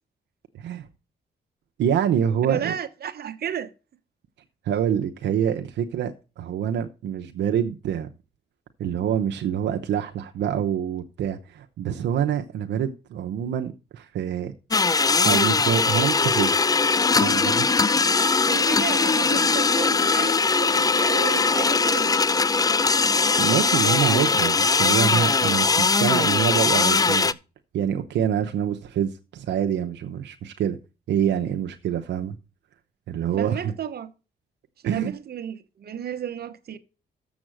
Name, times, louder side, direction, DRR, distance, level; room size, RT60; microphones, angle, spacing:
voice 1, 1.8-2.7 4.6-8.1 8.8-14.5 15.2-16.6 17.2-17.7 23.4-27.4 27.7-30.8 31.1-32.4 33.1-33.7 34.8-35.1, right 9 dB, 85° right, 0.8 m, -26 dB
voice 2, 2.4-3.7 18.5-22.4 33.4-34.1 34.8-36.8, right 9 dB, 60° right, 1.0 m, -33 dB
sound 1, 14.7-27.3, left 4 dB, 20° left, 0.4 m, -20 dB
7.2 x 6.1 x 7.6 m
cardioid pair, 75°, 18 cm